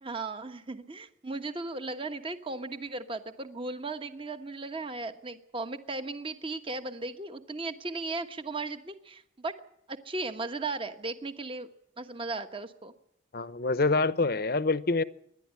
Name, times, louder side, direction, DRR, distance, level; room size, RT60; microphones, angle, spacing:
voice 1, 0.0-9.5 9.9-11.7 12.0-12.9, right 3 dB, 25° right, 8 dB, 1.3 m, -36 dB
voice 2, 13.3-15.0, left 3 dB, 50° left, 15 dB, 0.8 m, -26 dB
27.0 x 11.5 x 9.7 m, 0.75 s
head